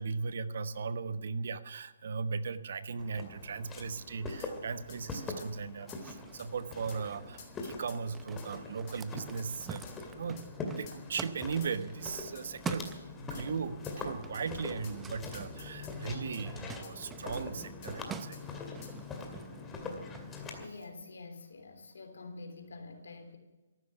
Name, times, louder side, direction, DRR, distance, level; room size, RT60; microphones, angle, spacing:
voice 1, 0.0-10.5 10.8-18.4, right 5 dB, 65° right, 12 dB, 1.1 m, -38 dB
Walk footsteps, 3.0-20.7, left 3 dB, 15° left, 2.3 m, -43 dB
sound 1, 4.4-4.5 4.9-5.0 5.4-5.5 5.9-6.0 6.4-6.5 6.9-7.0 7.4-8.5 8.9-9.0 9.4-10.0 10.4-10.5 10.9-11.0 11.6-11.9 12.3-12.5 12.8-13.0 13.3-13.5 13.8-14.0 14.3-14.5 14.8-15.0 15.3-16.4 16.8-16.9 17.3-17.9 18.3-18.4 18.8-19.0, left 7 dB, 35° left, 3.9 m, -53 dB
sound 2, 5.9-13.6 13.8-20.7, right 6 dB, 10° right, 0.7 m, -47 dB
voice 2, 20.6-23.4, left 3 dB, 75° left, 5 dB, 3.4 m, -47 dB
14.5 x 12.5 x 7.0 m, 1.1 s
hypercardioid pair, 150°, 0 cm